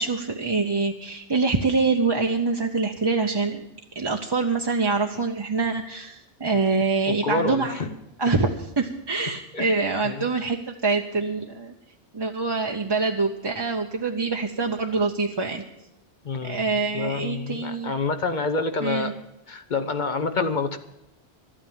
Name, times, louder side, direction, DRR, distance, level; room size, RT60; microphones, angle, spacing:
voice 1, 0.0-3.7 3.9-7.8 8.2-11.7 12.1-15.6 16.4-17.9 18.8-19.1, right 4 dB, 25° right, 2 dB, 0.7 m, -25 dB
voice 2, 7.2-7.9 9.5-9.7 10.0-10.3 16.2-19.1 19.5-20.8, left 4 dB, 45° left, 9 dB, 0.9 m, -27 dB
12.5 x 8.8 x 8.9 m, 0.85 s
omnidirectional pair, 1.1 m